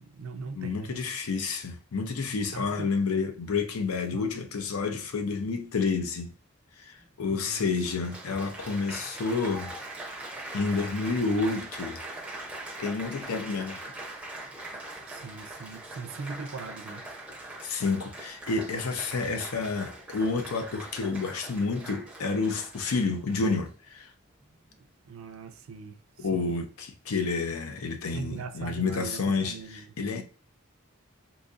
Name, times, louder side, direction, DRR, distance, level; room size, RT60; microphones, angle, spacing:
voice 1, 0.0-1.0 2.5-3.0 4.1-4.3 7.3-7.7 15.1-17.0 25.0-26.6 28.1-30.0, right 5 dB, 75° right, 0.5 m, -40 dB
voice 2, 0.6-6.3 6.8-9.7 10.5-12.0 12.8-13.9 17.6-24.1 26.2-30.2, left 4 dB, 85° left, 0.5 m, -30 dB
Applause, 7.0-7.1 7.8-23.7 24.4-24.7, right 2 dB, 5° right, 0.5 m, -42 dB
3.9 x 2.8 x 2.4 m
head